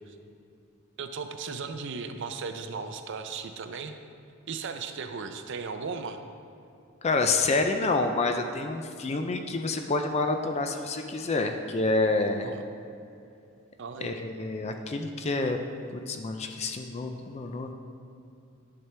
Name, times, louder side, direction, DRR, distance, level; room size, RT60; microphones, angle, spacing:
voice 1, 1.0-3.9 4.5-6.2 12.4-12.6 13.8-14.2, right 5 dB, 60° right, 7 dB, 0.5 m, -36 dB
voice 2, 7.0-12.5 14.0-15.6 15.9-17.7, left 3 dB, 30° left, 5 dB, 0.4 m, -28 dB
11.0 x 5.9 x 3.3 m, 2.6 s
head